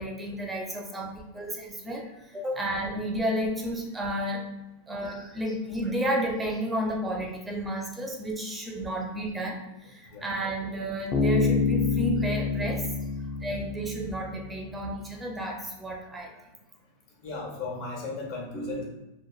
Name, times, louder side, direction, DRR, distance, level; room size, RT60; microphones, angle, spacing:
voice 1, 0.0-4.5 4.9-12.9 13.4-16.5 18.5-18.8, right 1 dB, 15° right, 0 dB, 0.4 m, -32 dB
Bass guitar, 11.1-14.6, left 4 dB, 35° left, 0.6 m, -27 dB
voice 2, 17.2-18.8, left 4 dB, 60° left, -2 dB, 1.1 m, -35 dB
3.0 x 2.1 x 2.4 m, 0.97 s
hypercardioid pair, 115°, 0 cm